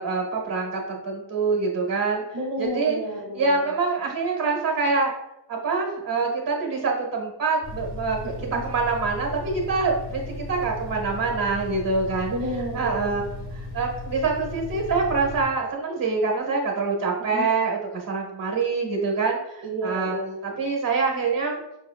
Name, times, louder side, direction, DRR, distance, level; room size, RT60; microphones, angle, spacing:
voice 1, 0.0-2.2 2.6-3.0 3.3-5.1 5.5-8.2 8.6-12.3 12.7-13.3 13.6-20.1 20.4-21.6, right 4 dB, 50° right, 0 dB, 1.1 m, -25 dB
voice 2, 2.3-3.7 8.2-8.6 12.3-13.2 17.2-17.5 19.6-20.4, right 1 dB, 80° right, 0 dB, 0.7 m, -31 dB
sound 1, 7.6-15.4, left 2 dB, 55° left, 0.9 m, -36 dB
5.2 x 2.8 x 2.3 m, 0.88 s
wide cardioid pair, 135°, 44 cm